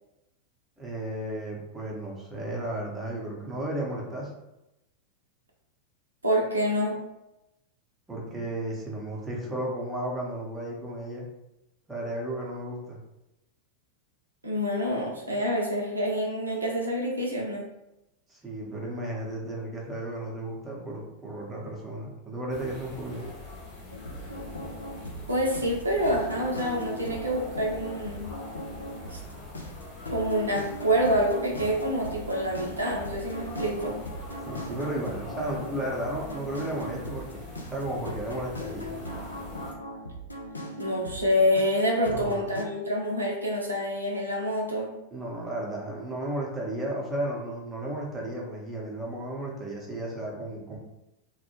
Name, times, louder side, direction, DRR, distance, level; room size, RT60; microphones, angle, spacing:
voice 1, 0.8-4.3 8.1-11.3 11.9-13.0 18.3-23.3 34.4-38.9 42.1-42.4 45.1-50.8, right 1 dB, 15° right, -3 dB, 0.7 m, -34 dB
voice 2, 6.2-7.0 14.4-17.6 25.3-28.3 29.1-29.2 30.1-34.0 40.8-44.9, equal, 80° right, -2 dB, 0.5 m, -27 dB
sound 1, 22.5-39.7, left 2 dB, 40° left, 0.9 m, -43 dB
sound 2, 23.9-42.7, equal, 80° left, 0.3 m, -39 dB
2.2 x 2.0 x 2.9 m, 0.90 s
figure-of-eight pair, 90°, 0 cm